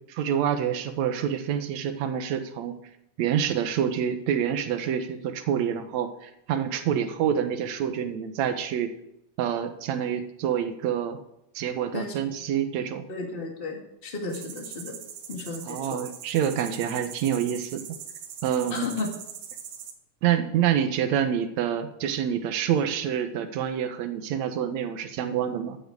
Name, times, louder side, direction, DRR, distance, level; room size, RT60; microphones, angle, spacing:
voice 1, 0.1-2.7 3.2-8.9 9.4-11.2 11.6-13.1 15.7-17.8 18.4-18.9 20.2-25.8, right 9 dB, 70° right, 8 dB, 2.1 m, -27 dB
voice 2, 13.1-15.0 15.3-16.0 18.7-19.1, left 3 dB, 20° left, 1 dB, 2.0 m, -33 dB
sound 1, 14.3-19.9, right 8 dB, 85° right, 2.8 m, -41 dB
13.5 x 9.2 x 4.9 m, 0.80 s
omnidirectional pair, 3.7 m